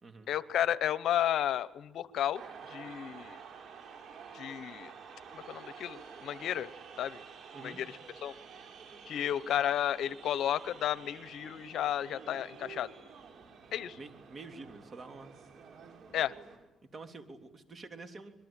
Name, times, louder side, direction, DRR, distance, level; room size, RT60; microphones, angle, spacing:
voice 1, 0.3-3.4 4.3-4.9 5.3-6.7 7.0-7.2 7.6-7.9 8.2-8.3 9.1-12.9 13.7-14.0 16.1-16.3, left 11 dB, 75° left, 16 dB, 1.0 m, -32 dB
sound 1, 2.4-16.6, right 6 dB, 65° right, 6.5 m, -50 dB
voice 2, 14.0-15.3 16.9-18.3, right 3 dB, 40° right, 6 dB, 3.3 m, -47 dB
26.0 x 22.5 x 8.9 m, 0.97 s
cardioid pair, 90°, 0 cm